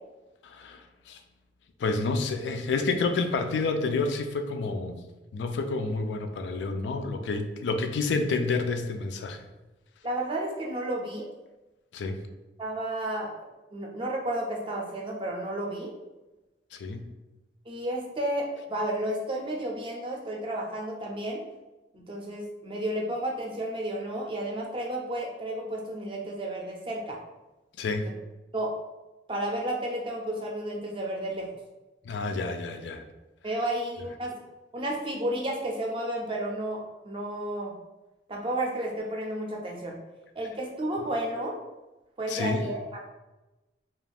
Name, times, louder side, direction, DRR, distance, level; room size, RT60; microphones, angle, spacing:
voice 1, 0.4-0.8 1.1-1.2 1.8-5.0 5.3-9.4 11.9-12.2 16.8-17.0 27.8-28.1 32.1-33.0 42.3-42.6, left 3 dB, 85° left, 6 dB, 0.3 m, -29 dB
voice 2, 10.0-11.3 12.6-13.3 13.7-15.9 17.7-21.4 21.9-27.2 28.5-28.7 29.3-31.5 33.4-34.4 34.7-37.7 38.3-40.0 40.4-41.5 42.2-43.1, right 1 dB, 30° right, 0 dB, 0.4 m, -32 dB
2.4 x 2.3 x 3.3 m, 1.1 s
head